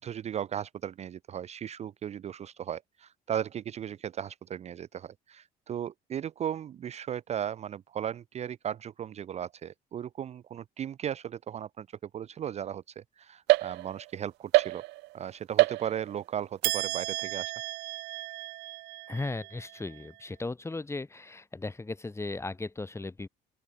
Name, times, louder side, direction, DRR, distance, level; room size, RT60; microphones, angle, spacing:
voice 1, 0.0-11.9 12.1-14.8 15.1-17.5, right 9 dB, 40° right, 0.5 m, -36 dB
sound 1, 13.5-14.1 14.5-15.2 15.6-16.2 16.6-20.1, right 21 dB, 85° right, 0.6 m, -29 dB
voice 2, 19.1-23.3, left 3 dB, 15° left, 5.6 m, -36 dB
open air
cardioid pair, 110°, 17 cm